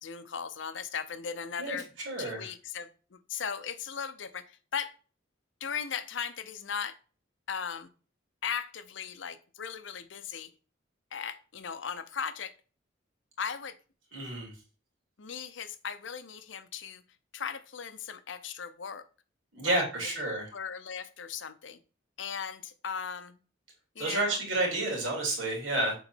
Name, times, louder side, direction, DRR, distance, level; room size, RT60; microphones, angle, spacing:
voice 1, 0.0-1.9 2.2-4.9 5.6-7.0 7.5-7.9 8.4-10.5 11.1-12.5 13.4-13.8 15.2-17.0 17.3-19.0 19.6-19.8 20.5-21.8 22.2-23.4 23.9-24.4, left 7 dB, 70° left, 11 dB, 0.6 m, -37 dB
voice 2, 2.0-2.4 14.1-14.5 19.5-20.5 24.0-26.0, right 2 dB, 80° right, -1 dB, 2.9 m, -30 dB
6.9 x 3.9 x 4.4 m, 0.37 s
head